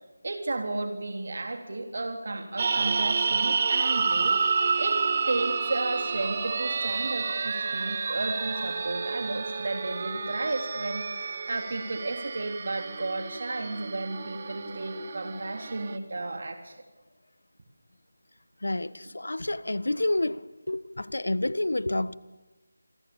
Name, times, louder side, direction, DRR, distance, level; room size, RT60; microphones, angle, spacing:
voice 1, 0.2-4.4 4.8-5.0 5.3-16.8, right 2 dB, 55° right, 3.6 m, -33 dB
sound 1, 2.6-16.0, right 5 dB, 35° right, 1.6 m, -29 dB
voice 2, 18.6-22.1, left 2 dB, 80° left, 1.2 m, -29 dB
28.5 x 23.0 x 7.3 m
figure-of-eight pair, 165°, 0 cm